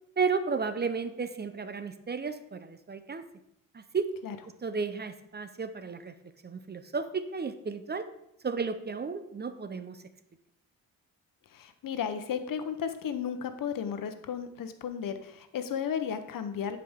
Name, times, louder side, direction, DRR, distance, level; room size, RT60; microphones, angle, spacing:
voice 1, 0.2-3.2 3.7-4.1 4.6-6.1 6.4-8.1 8.4-10.0, right 5 dB, 30° right, 11 dB, 0.6 m, -33 dB
voice 2, 11.5-16.8, left 8 dB, 70° left, 9 dB, 0.8 m, -34 dB
10.0 x 4.9 x 3.6 m, 0.80 s
cardioid pair, 75°, 35 cm